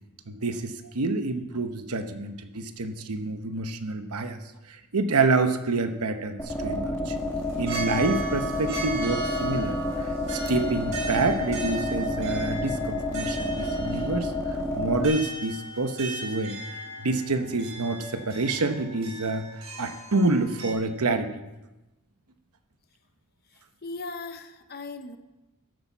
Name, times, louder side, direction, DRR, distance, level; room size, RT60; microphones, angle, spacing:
voice 1, 0.3-4.4 4.7-7.2 7.6-16.6 17.0-21.3, right 3 dB, 90° right, 8 dB, 0.9 m, -28 dB
sound 1, 6.4-15.1, left 1 dB, 10° left, 1.1 m, -29 dB
sound 2, 7.2-20.7, right 2 dB, 60° right, 3.5 m, -38 dB
voice 2, 23.8-25.2, left 3 dB, 45° left, 8 dB, 0.8 m, -37 dB
13.5 x 8.2 x 4.6 m, 1.0 s
head